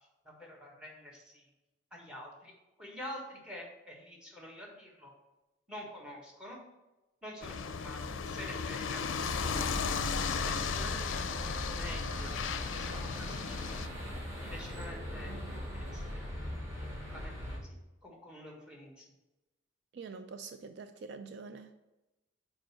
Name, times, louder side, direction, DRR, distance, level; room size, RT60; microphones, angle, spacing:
voice 1, 0.2-1.4 1.9-2.5 2.8-5.1 5.7-6.6 7.2-8.0 8.2-9.1 10.3-12.3 12.8-13.6 14.5-15.3 15.7-16.2 17.1-17.8 18.0-19.0, left 1 dB, 5° right, -1 dB, 1.4 m, -47 dB
sound 1, 7.4-13.9, left 5 dB, 75° left, 0.5 m, -35 dB
sound 2, 9.3-17.6, equal, 85° right, 2.5 m, -41 dB
voice 2, 19.9-21.8, right 4 dB, 55° right, 8 dB, 0.3 m, -45 dB
5.3 x 4.7 x 5.6 m, 1.0 s
head